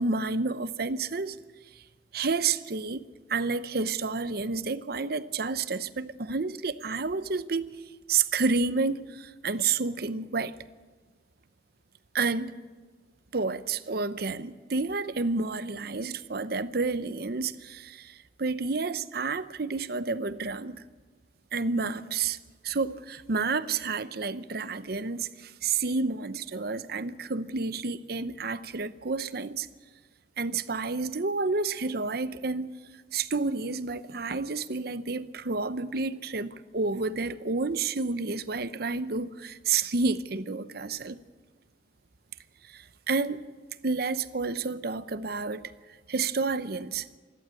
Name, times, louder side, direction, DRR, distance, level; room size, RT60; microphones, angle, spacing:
voice 1, 0.0-1.4 2.1-7.8 8.1-10.5 12.1-12.5 13.3-20.8 21.5-22.4 22.6-29.7 30.4-32.7 33.1-41.2 42.7-43.5 43.8-45.6 46.1-47.1, right 4 dB, 60° right, 0.8 m, -30 dB
27.0 x 12.0 x 9.0 m
head